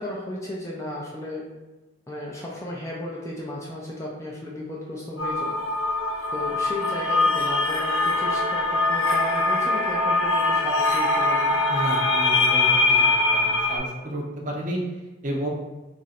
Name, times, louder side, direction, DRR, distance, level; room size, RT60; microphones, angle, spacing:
voice 1, 0.0-1.5 2.1-5.6 6.3-11.6, left 1 dB, 15° left, -4 dB, 0.4 m, -34 dB
sound 1, 5.2-13.8, left 2 dB, 80° left, 0.7 m, -22 dB
voice 2, 11.7-14.8 15.2-15.5, right 1 dB, 40° right, 0 dB, 0.6 m, -31 dB
3.0 x 2.5 x 4.2 m, 1.2 s
head